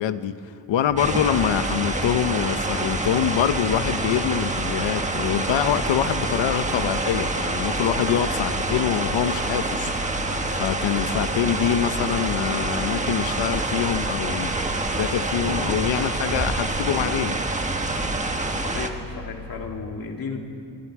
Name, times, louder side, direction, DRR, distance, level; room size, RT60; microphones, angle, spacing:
voice 1, 0.0-9.9 10.5-14.5 14.9-17.4, left 9 dB, 80° left, 11 dB, 1.1 m, -25 dB
sound 1, 0.9-19.7, left 1 dB, 5° left, 4.5 m, -39 dB
sound 2, 1.0-18.9, right 2 dB, 15° right, 1.3 m, -27 dB
voice 2, 18.4-20.4, left 4 dB, 50° left, 2 dB, 2.6 m, -34 dB
26.5 x 23.5 x 4.9 m, 2.6 s
wide cardioid pair, 150°, 44 cm